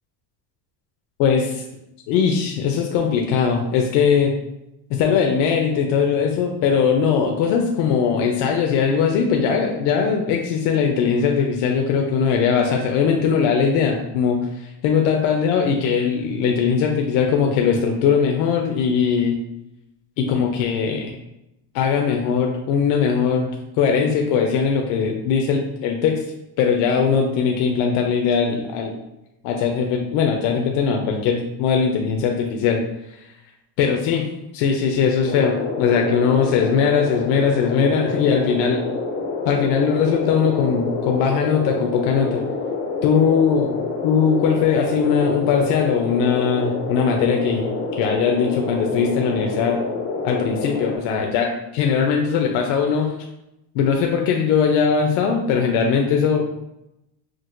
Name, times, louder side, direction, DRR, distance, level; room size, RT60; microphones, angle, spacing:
voice 1, 1.2-1.6 2.1-4.3 4.9-19.4 20.2-21.2 21.7-26.2 26.6-29.0 29.4-32.8 33.8-34.2 34.5-38.9 39.5-42.4 43.0-49.8 50.2-53.1 53.7-56.5, left 6 dB, 75° left, 2 dB, 0.6 m, -20 dB
sound 1, 35.3-51.0, left 3 dB, 25° left, 0.3 m, -27 dB
6.1 x 2.3 x 2.5 m, 0.88 s
cardioid pair, 150°, 48 cm